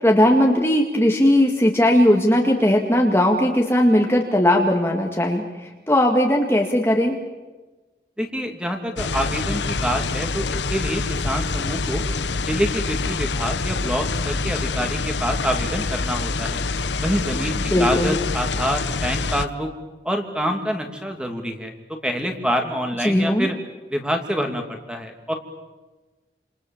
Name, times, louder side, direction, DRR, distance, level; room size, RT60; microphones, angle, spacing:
voice 1, 0.0-7.2 17.7-18.2 23.0-23.5, left 1 dB, 15° left, 0 dB, 2.1 m, -18 dB
voice 2, 8.2-12.0 12.4-16.6 17.0-19.7 20.0-21.7 22.0-23.5 23.9-25.3, equal, 5° right, 4 dB, 2.7 m, -26 dB
sound 1, 9.0-19.5, left 3 dB, 85° left, 1.0 m, -26 dB
29.0 x 28.0 x 7.3 m, 1.2 s
head